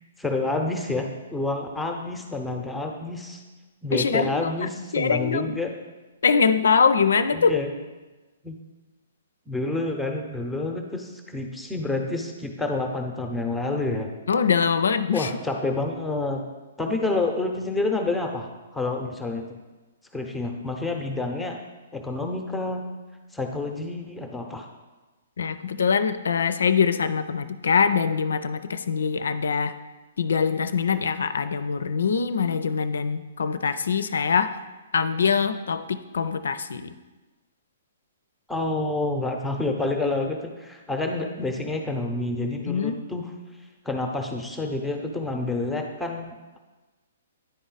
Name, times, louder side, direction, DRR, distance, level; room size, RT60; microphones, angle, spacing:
voice 1, 0.2-3.4 3.8-5.7 7.3-7.7 8.4-8.6 9.5-14.1 15.1-16.4 16.8-19.4 20.1-21.6 21.9-22.8 23.3-24.7 38.5-43.3 43.8-46.3, left 2 dB, 5° left, 2 dB, 0.7 m, -28 dB
voice 2, 3.9-5.5 6.2-7.6 14.3-15.3 25.4-29.7 30.2-34.6 34.9-36.9 42.7-43.0, left 6 dB, 75° left, 12 dB, 0.4 m, -23 dB
10.0 x 4.0 x 3.9 m, 1.2 s
hypercardioid pair, 125°, 0 cm